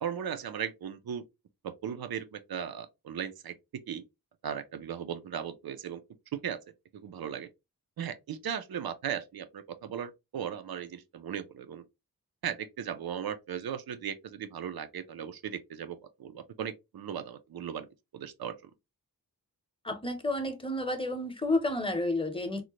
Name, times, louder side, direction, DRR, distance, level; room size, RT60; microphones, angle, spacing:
voice 1, 0.0-1.2 1.6-4.0 4.4-6.0 6.3-6.6 6.9-7.5 8.0-11.8 12.4-17.9 18.1-18.6, right 8 dB, 80° right, 0.5 m, -37 dB
voice 2, 19.8-22.6, left 2 dB, 15° left, 0.7 m, -30 dB
3.8 x 2.1 x 2.9 m
wide cardioid pair, 95°, 37 cm